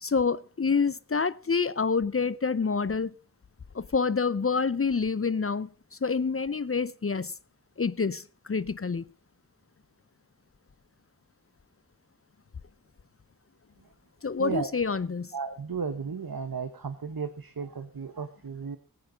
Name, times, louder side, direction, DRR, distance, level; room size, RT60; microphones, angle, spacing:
voice 1, 0.0-3.1 3.7-5.7 6.0-7.3 7.8-9.0 14.2-15.3, left 5 dB, 40° left, 0.5 m, -27 dB
voice 2, 15.3-18.8, right 5 dB, 70° right, 1.0 m, -34 dB
15.0 x 9.6 x 5.0 m
wide cardioid pair, 40°, 37 cm